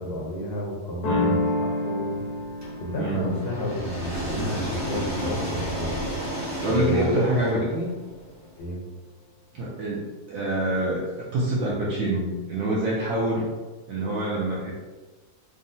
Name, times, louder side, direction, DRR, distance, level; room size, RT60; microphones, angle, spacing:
voice 1, 0.0-2.2 2.8-6.1 6.6-7.3 8.6-8.8, equal, 55° left, -2 dB, 0.7 m, -31 dB
sound 1, 1.0-6.6, left 2 dB, 80° left, 1.1 m, -31 dB
voice 2, 1.0-1.4 3.0-3.4 6.6-7.9 9.5-13.5 13.9-14.7, right 1 dB, 70° right, -5 dB, 0.9 m, -26 dB
sound 2, 2.6-8.5, equal, 20° right, 0.4 m, -32 dB
3.6 x 2.0 x 2.6 m, 1.3 s
omnidirectional pair, 1.7 m